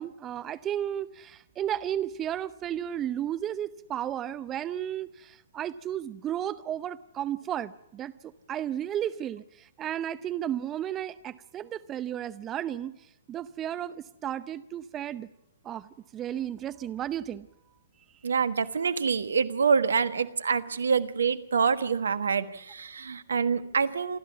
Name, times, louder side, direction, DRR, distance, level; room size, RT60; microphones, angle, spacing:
voice 1, 0.0-15.3 15.6-15.9 16.1-17.5, right 10 dB, 25° right, 15 dB, 0.7 m, -33 dB
voice 2, 18.2-24.2, right 6 dB, 75° right, 13 dB, 1.4 m, -26 dB
28.0 x 13.0 x 7.0 m, 0.88 s
figure-of-eight pair, 120°, 0 cm